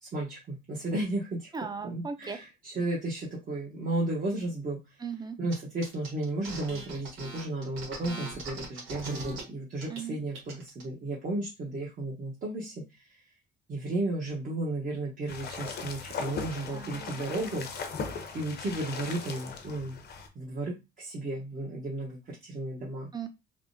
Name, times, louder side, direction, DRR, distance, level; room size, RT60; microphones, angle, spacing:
voice 1, 0.0-1.5 1.8-4.8 5.4-12.8 13.7-17.7 18.3-20.0 20.3-23.1, right 2 dB, 45° right, -3 dB, 1.0 m, -33 dB
voice 2, 1.5-2.4 5.0-5.4 9.9-10.2 16.7-17.1 23.1-23.3, right 6 dB, 20° right, 8 dB, 0.5 m, -37 dB
sound 1, 5.5-5.6 5.8-9.4 9.8-10.0 10.3-10.8, right 3 dB, 85° right, 1.3 m, -40 dB
sound 2, 15.3-20.3, left 5 dB, 55° left, 0.6 m, -38 dB
3.5 x 2.1 x 2.6 m, 0.24 s
cardioid pair, 90°, 20 cm